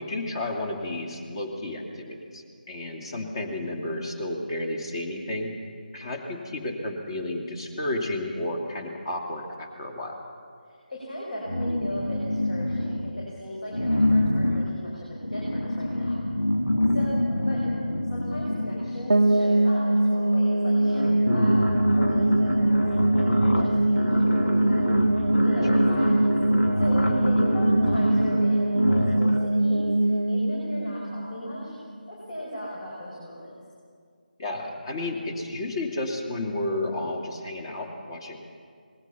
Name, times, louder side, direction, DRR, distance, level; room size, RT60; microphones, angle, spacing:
voice 1, 0.0-5.5 5.9-10.2 16.9-17.1 25.7-25.8 34.4-38.4, left 1 dB, 30° left, 4 dB, 2.6 m, -32 dB
voice 2, 10.6-16.2 16.9-17.2 17.5-17.6 18.1-21.6 22.0-24.8 25.4-26.2 26.8-31.7 32.1-33.5, equal, 55° left, -4 dB, 6.3 m, -37 dB
sound 1, 11.5-13.3 13.7-19.4 20.3-20.4 20.7-29.6, left 1 dB, 80° left, 1.6 m, -26 dB
sound 2, 19.1-32.0, right 1 dB, 70° right, 0.5 m, -23 dB
26.0 x 20.5 x 5.8 m, 2.1 s
figure-of-eight pair, 155°, 5 cm